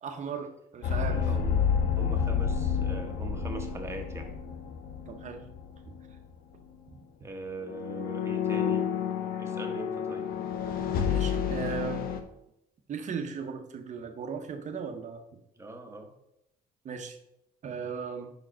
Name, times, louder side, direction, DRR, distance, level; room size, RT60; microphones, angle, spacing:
voice 1, 0.0-1.3 5.1-5.4 5.9-6.0 9.3-9.4 11.1-12.1 12.9-15.2 16.8-17.2 17.6-18.3, right 6 dB, 45° right, 5 dB, 0.9 m, -37 dB
sound 1, 0.8-5.7 5.9-6.2 7.6-12.2, left 7 dB, 60° left, 0.8 m, -30 dB
voice 2, 1.0-1.7 2.0-4.3 7.2-8.9 9.4-10.3 15.6-16.1, right 2 dB, 15° right, 3 dB, 1.1 m, -41 dB
5.2 x 4.8 x 4.4 m, 0.81 s
cardioid pair, 110°, 17 cm